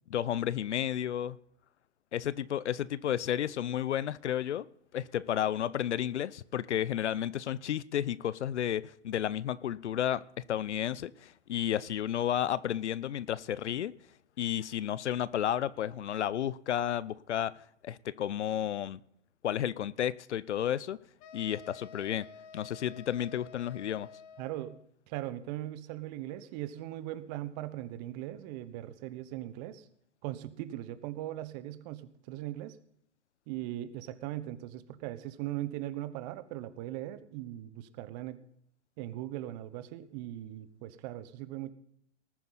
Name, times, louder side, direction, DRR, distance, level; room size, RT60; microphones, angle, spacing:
voice 1, 0.1-1.4 2.1-4.7 4.9-13.9 14.4-17.6 17.8-19.0 19.4-21.0 21.3-22.3 22.5-24.1, left 10 dB, 75° left, 0.7 m, -32 dB
sound 1, 21.2-24.9, left 6 dB, 30° left, 0.9 m, -51 dB
voice 2, 24.4-24.8 25.1-29.9 30.2-32.8 33.5-38.4 39.0-41.7, right 14 dB, 35° right, 1.1 m, -39 dB
19.5 x 9.4 x 4.1 m
hypercardioid pair, 125°, 35 cm